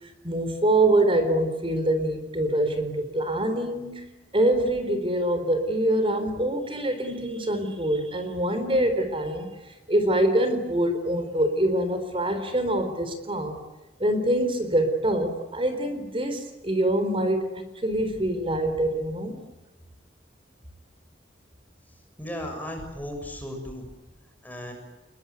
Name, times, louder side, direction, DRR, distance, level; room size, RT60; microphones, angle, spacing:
voice 1, 0.2-13.6 14.0-19.4, right 1 dB, 30° right, 8 dB, 4.0 m, -25 dB
voice 2, 22.2-23.9 24.4-24.7, left 1 dB, 10° left, 3 dB, 6.8 m, -36 dB
28.0 x 22.5 x 9.5 m, 1.1 s
head